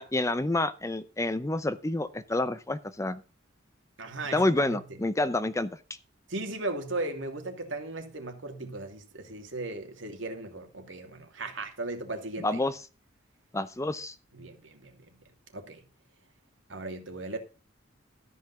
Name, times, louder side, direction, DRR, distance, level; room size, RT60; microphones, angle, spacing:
voice 1, 0.0-3.2 4.3-5.7 12.4-12.8 13.5-14.1, left 2 dB, 15° left, 0.6 m, -28 dB
voice 2, 4.0-4.8 6.3-12.6 14.3-15.0 15.5-15.8 16.7-17.4, right 2 dB, 75° right, 2.7 m, -37 dB
13.5 x 5.6 x 7.0 m
head